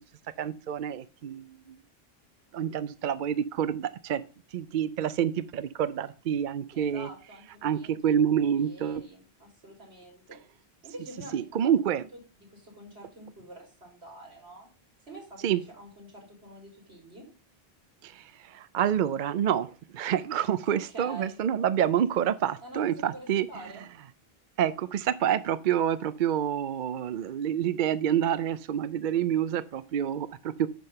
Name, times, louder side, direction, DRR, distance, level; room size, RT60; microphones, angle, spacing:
voice 1, 0.4-1.8 2.5-4.2 4.5-7.1 7.6-9.0 11.3-12.0 15.4-15.6 18.0-23.5 24.6-30.7, right 9 dB, 60° right, 0.6 m, -28 dB
voice 2, 6.7-10.4 10.8-14.7 15.0-17.2 20.6-21.4 22.6-23.9, right 1 dB, 90° right, 4.1 m, -47 dB
10.5 x 3.7 x 6.6 m
omnidirectional pair, 1.1 m